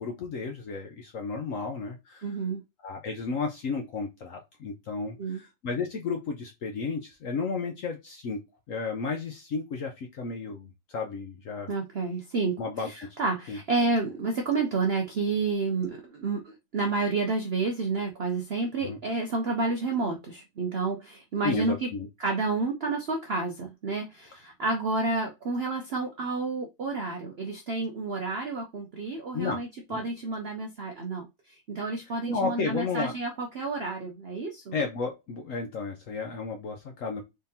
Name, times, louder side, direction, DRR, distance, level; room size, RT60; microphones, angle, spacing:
voice 1, 0.0-2.3 2.8-8.4 8.7-11.7 12.6-12.9 13.5-13.6 18.8-19.0 21.4-22.1 29.3-29.6 29.9-30.0 32.3-33.2 34.7-37.2, left 4 dB, 65° left, 3 dB, 0.8 m, -33 dB
voice 2, 2.2-2.6 5.2-5.4 11.7-12.6 12.8-21.9 22.2-34.8, right 3 dB, 65° right, 2 dB, 0.6 m, -30 dB
3.7 x 3.4 x 2.7 m, 0.23 s
omnidirectional pair, 1.9 m